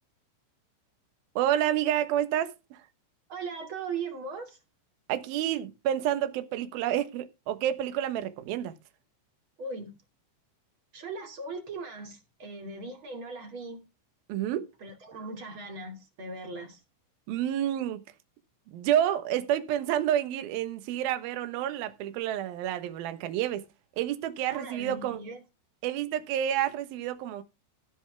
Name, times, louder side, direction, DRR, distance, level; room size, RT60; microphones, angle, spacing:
voice 1, 1.4-2.8 5.1-8.7 14.3-14.7 17.3-18.0 18.7-23.7 24.0-25.2 25.8-27.4, right 11 dB, 65° right, 2.5 m, -29 dB
voice 2, 3.3-4.6 9.6-9.9 10.9-13.8 14.8-16.8 24.5-25.4, right 3 dB, 35° right, 2.5 m, -39 dB
16.5 x 7.2 x 3.5 m
omnidirectional pair, 5.7 m